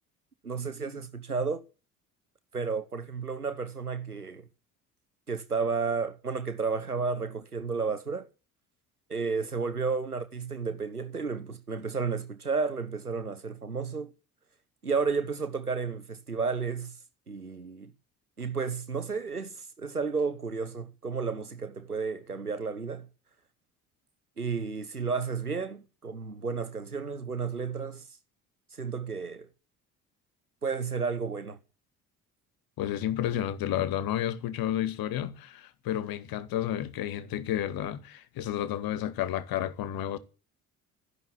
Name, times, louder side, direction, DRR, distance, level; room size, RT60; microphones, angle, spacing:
voice 1, 0.4-1.6 2.5-4.5 5.3-8.3 9.1-14.1 14.8-16.9 17.3-17.9 18.4-23.1 24.4-28.0 28.8-29.5 30.6-31.6, right 5 dB, 90° right, 1.1 m, -32 dB
voice 2, 32.8-40.2, left 11 dB, 50° left, 2.1 m, -31 dB
14.0 x 11.0 x 9.0 m
figure-of-eight pair, 50°, 44 cm